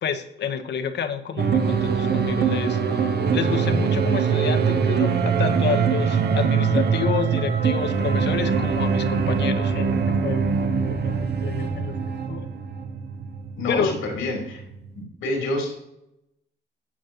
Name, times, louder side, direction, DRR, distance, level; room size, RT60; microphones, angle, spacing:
voice 1, 0.0-11.9 12.3-12.5 13.7-13.9, left 7 dB, 60° left, 8 dB, 1.1 m, -29 dB
sound 1, 1.4-15.0, right 6 dB, 55° right, 1.0 m, -23 dB
voice 2, 13.6-14.6 15.0-15.7, left 2 dB, 90° left, 0 dB, 3.6 m, -27 dB
15.0 x 5.1 x 2.9 m, 0.85 s
cardioid pair, 90°, 20 cm